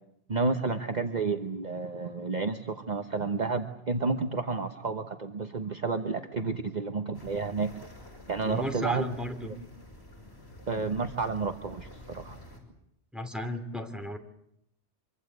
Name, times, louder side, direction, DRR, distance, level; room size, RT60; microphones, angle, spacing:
voice 1, 0.3-7.7 8.3-9.1 9.4-9.6 10.7-12.4, right 4 dB, 40° right, 7 dB, 1.2 m, -31 dB
sound 1, 7.1-12.6, left 1 dB, 65° left, 6.7 m, -49 dB
voice 2, 8.5-9.5 13.1-14.2, equal, ahead, 4 dB, 2.9 m, -33 dB
25.0 x 24.5 x 8.1 m, 0.76 s
omnidirectional pair, 1.2 m